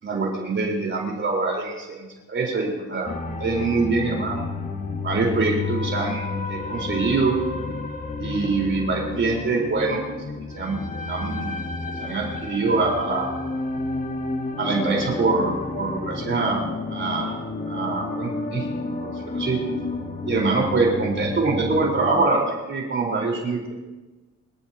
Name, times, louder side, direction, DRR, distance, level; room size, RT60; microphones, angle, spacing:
voice 1, 0.0-3.1 3.4-4.4 5.0-7.4 8.2-10.0 10.5-10.8 11.0-11.6 12.0-13.3 14.6-16.6 16.9-17.4 17.7-18.7 19.0-19.6 20.2-23.8, right 3 dB, 40° right, -1 dB, 4.8 m, -24 dB
sound 1, 3.0-22.2, left 3 dB, 25° left, 1.7 m, -31 dB
25.0 x 13.5 x 3.0 m, 1.2 s
cardioid pair, 90°, 30 cm